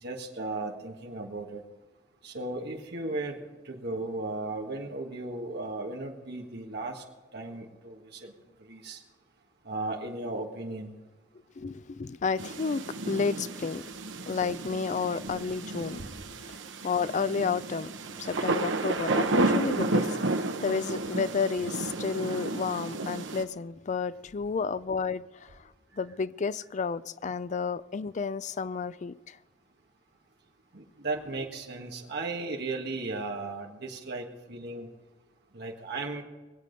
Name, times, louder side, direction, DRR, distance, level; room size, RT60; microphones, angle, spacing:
voice 1, 0.0-1.6 2.2-3.4 3.6-7.0 7.3-8.3 8.7-9.0 9.6-10.9 30.7-34.9 35.5-36.2, right 2 dB, 60° right, 1.7 m, -36 dB
voice 2, 11.6-13.8 14.3-16.0 16.5-17.9 18.2-25.6 26.0-29.4, left 5 dB, 40° left, 0.4 m, -31 dB
sound 1, 12.4-23.4, right 2 dB, 80° right, 1.0 m, -31 dB
22.0 x 8.4 x 5.3 m
head